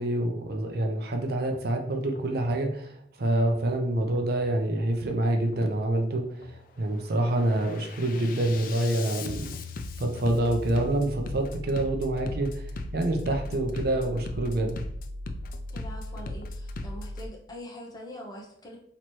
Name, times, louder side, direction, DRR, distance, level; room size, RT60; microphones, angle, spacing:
voice 1, 0.0-9.5 10.0-12.6 12.9-14.8, right 1 dB, 60° right, 3 dB, 0.6 m, -27 dB
Bass drum, 1.4-1.7 2.2-2.6 3.4-3.7 4.2-4.6 5.4-5.7 6.2-6.7 7.1-17.3, left 2 dB, 50° left, 0.4 m, -38 dB
voice 2, 15.7-18.8, equal, 20° left, -1 dB, 0.8 m, -43 dB
3.0 x 2.9 x 4.4 m, 0.66 s
head